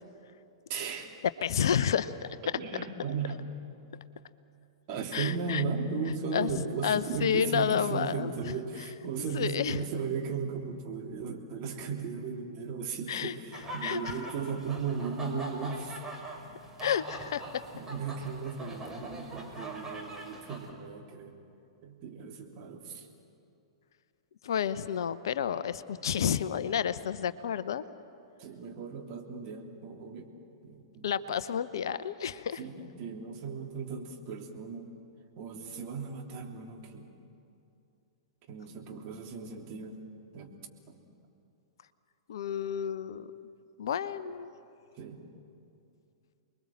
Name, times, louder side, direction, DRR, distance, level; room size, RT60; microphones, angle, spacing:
voice 1, 0.7-1.1 2.5-3.4 4.9-16.0 17.7-21.4 21.8-23.1 28.4-30.3 30.6-31.1 32.6-34.9 35.4-37.1 38.5-40.0 40.3-40.5 40.9-41.0 45.0-45.2, right 5 dB, 40° right, 2 dB, 3.2 m, -36 dB
voice 2, 1.4-2.1 5.1-5.6 6.3-6.5 6.8-8.3 9.3-9.8 13.1-13.3 13.8-14.1 16.8-17.6 24.4-27.8 31.0-32.6 42.3-43.3 43.8-44.5, left 8 dB, 60° left, 15 dB, 0.8 m, -30 dB
sound 1, 13.5-20.7, right 1 dB, 15° right, 4.4 m, -42 dB
29.5 x 21.5 x 7.7 m, 2.6 s
figure-of-eight pair, 105°, 3 cm